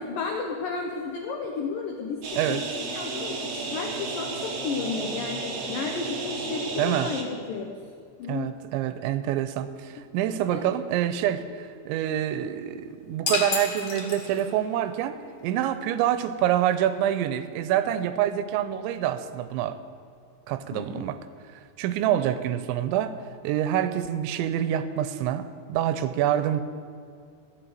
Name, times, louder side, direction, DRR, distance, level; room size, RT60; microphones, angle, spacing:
voice 1, 0.0-2.2 2.5-7.7 8.2-8.5 10.5-10.6 20.7-21.0, left 5 dB, 80° left, 2 dB, 1.9 m, -32 dB
sound 1, 2.2-7.2, right 4 dB, 70° right, 1.6 m, -33 dB
voice 2, 6.8-7.1 8.3-19.8 20.5-21.2 21.8-23.1 23.4-26.6, right 11 dB, 85° right, 12 dB, 3.0 m, -26 dB
sound 2, 13.3-14.7, left 5 dB, 55° left, 2.7 m, -30 dB
14.0 x 7.5 x 9.4 m, 2.3 s
omnidirectional pair, 5.3 m